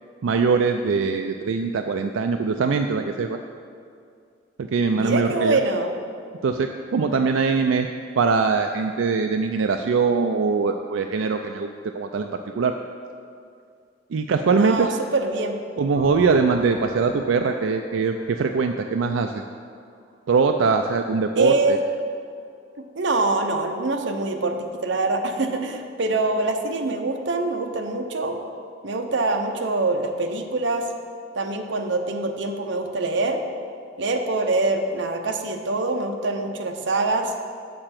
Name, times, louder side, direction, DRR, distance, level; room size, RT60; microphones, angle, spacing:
voice 1, 0.2-3.4 4.6-5.6 6.4-7.9 8.2-12.7 14.1-14.9 15.8-19.4 20.3-21.8, right 4 dB, 90° right, 5 dB, 0.4 m, -22 dB
voice 2, 5.0-5.9 14.5-15.6 21.3-21.8 22.8-28.4 28.8-30.9 31.3-33.4 34.0-37.3, right 2 dB, 70° right, 4 dB, 0.8 m, -24 dB
sound 1, 16.0-19.7, right 2 dB, 35° right, 1.6 m, -40 dB
7.6 x 6.8 x 5.8 m, 2.3 s
head